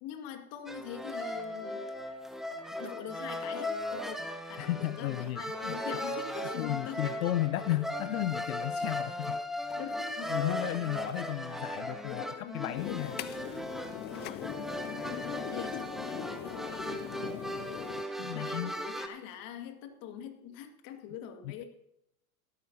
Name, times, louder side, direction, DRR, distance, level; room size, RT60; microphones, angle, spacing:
voice 1, 0.0-1.8 2.7-7.0 9.7-10.3 10.7-10.8 12.0-13.4 14.0-14.8 15.2-17.8 18.3-21.6, left 9 dB, 50° left, 5 dB, 2.2 m, -44 dB
sound 1, 0.7-19.1, left 1 dB, ahead, 1.5 m, -37 dB
voice 2, 4.6-5.8 6.6-9.4 10.3-13.1 18.2-18.7 21.4-21.5, left 15 dB, 75° left, 15 dB, 0.6 m, -34 dB
sound 2, 12.8-18.0, left 14 dB, 25° left, 0.4 m, -41 dB
16.5 x 13.5 x 2.8 m, 0.79 s
hypercardioid pair, 90°, 44 cm